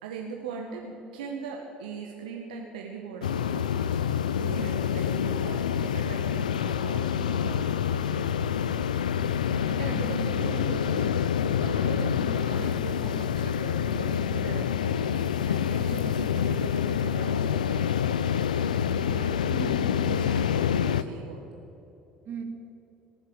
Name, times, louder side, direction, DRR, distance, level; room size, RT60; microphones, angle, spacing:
voice 1, 0.0-3.6 3.9-8.5 9.4-18.1 18.3-19.5 19.8-21.5, right 5 dB, 80° right, 1 dB, 1.2 m, -40 dB
sound 1, 3.2-21.0, left 8 dB, 85° left, 0.4 m, -27 dB
voice 2, 4.4-5.0 9.0-9.5 9.8-10.4 19.5-19.8 22.2-22.4, right 4 dB, 50° right, 4 dB, 2.2 m, -40 dB
19.0 x 7.2 x 7.8 m, 2.9 s
hypercardioid pair, 60°, 4 cm